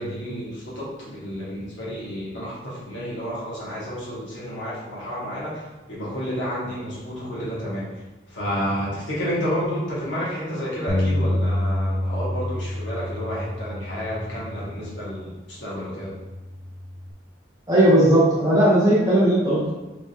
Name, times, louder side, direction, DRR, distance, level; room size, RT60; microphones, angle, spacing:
voice 1, 0.0-8.0 8.3-16.2, equal, 85° left, -7 dB, 1.4 m, -30 dB
Bass guitar, 10.9-15.3 16.0-17.1, left 1 dB, 30° left, 0.4 m, -28 dB
voice 2, 17.7-19.7, right 1 dB, 20° right, -7 dB, 1.0 m, -17 dB
3.5 x 3.1 x 2.7 m, 1.1 s
head